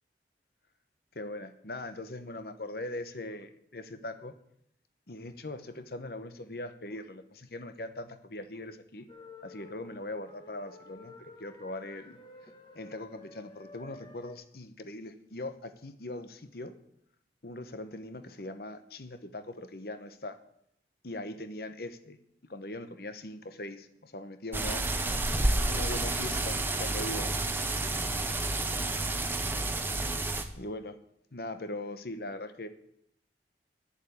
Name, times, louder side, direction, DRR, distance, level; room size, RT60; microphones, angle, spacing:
voice 1, 1.1-4.3 5.1-9.0 9.4-12.2 12.7-16.7 17.4-20.4 21.0-22.2 22.5-24.9 25.6-27.5 30.6-31.0 31.3-32.7, left 2 dB, 60° left, 10 dB, 1.0 m, -40 dB
sound 1, 9.1-14.3, left 2 dB, 25° left, 1.2 m, -51 dB
sound 2, 24.5-30.4, right 2 dB, 10° right, 0.8 m, -30 dB
11.0 x 7.3 x 8.5 m, 0.73 s
head